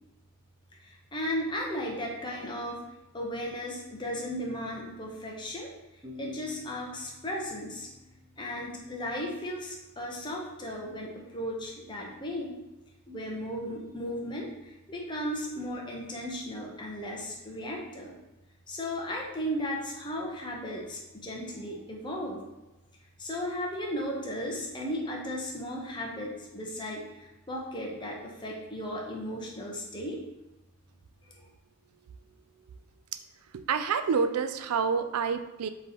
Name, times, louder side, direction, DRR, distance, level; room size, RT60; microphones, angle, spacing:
voice 1, 0.7-2.8 3.1-7.9 8.4-12.6 13.1-18.2 18.7-22.5 23.2-30.2 31.2-31.5, equal, 20° left, -1 dB, 0.8 m, -36 dB
sound 1, 6.0-9.4, left 4 dB, 15° right, 1.3 m, -50 dB
voice 2, 33.5-35.7, right 6 dB, 80° right, 10 dB, 0.4 m, -28 dB
3.8 x 3.1 x 4.2 m, 0.99 s
head